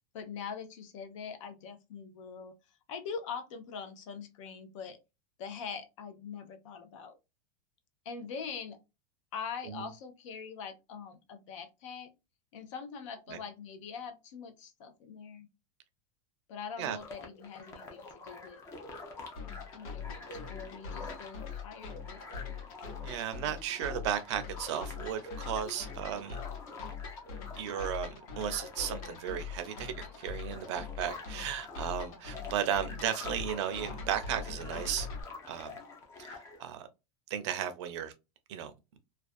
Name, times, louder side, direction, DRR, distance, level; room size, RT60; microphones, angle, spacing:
voice 1, 0.1-5.0 5.4-7.2 8.0-8.8 9.3-12.1 12.5-15.5 16.5-18.6 19.2-19.3 19.7-22.6, left 6 dB, 65° left, 0.6 m, -43 dB
sound 1, 17.0-36.6, left 3 dB, 15° left, 0.4 m, -47 dB
sound 2, 19.4-35.2, left 6 dB, 85° left, 1.1 m, -43 dB
voice 2, 23.0-26.4 27.6-35.1 35.5-35.7 36.2-36.9 37.3-38.1 38.5-38.7, right 9 dB, 55° right, 0.5 m, -35 dB
2.4 x 2.2 x 2.4 m
supercardioid pair, 165°, 18 cm